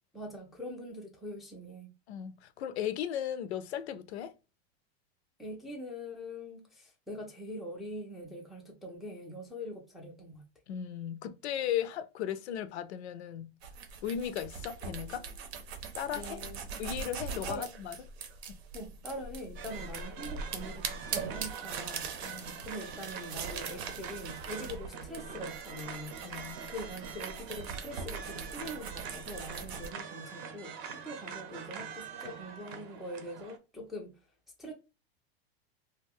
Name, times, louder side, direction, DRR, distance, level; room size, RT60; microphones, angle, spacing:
voice 1, 0.1-1.9 5.4-10.5 16.1-16.6 17.5-17.7 18.7-34.2 34.6-34.7, equal, ahead, 0.3 m, -43 dB
voice 2, 2.1-4.3 10.7-13.5 14.0-15.3 15.9-16.4 16.8-17.9 18.5-18.6 22.2-22.7 26.2-26.7, left 10 dB, 90° left, 0.5 m, -36 dB
sound 1, 13.6-29.9, right 5 dB, 85° right, 0.7 m, -41 dB
sound 2, 19.6-33.6, right 6 dB, 40° right, 0.6 m, -44 dB
2.4 x 2.2 x 3.4 m
supercardioid pair, 135°, 32 cm